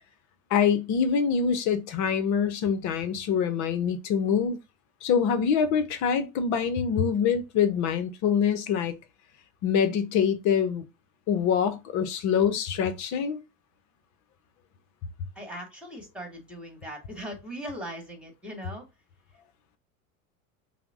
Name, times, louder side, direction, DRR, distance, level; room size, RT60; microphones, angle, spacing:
voice 1, 0.5-4.6 5.0-8.9 9.6-10.8 11.3-13.4, left 7 dB, 45° left, 0.7 m, -25 dB
voice 2, 15.4-18.9, equal, ahead, 1.9 m, -39 dB
5.7 x 2.1 x 3.7 m
hypercardioid pair, 80°, 43 cm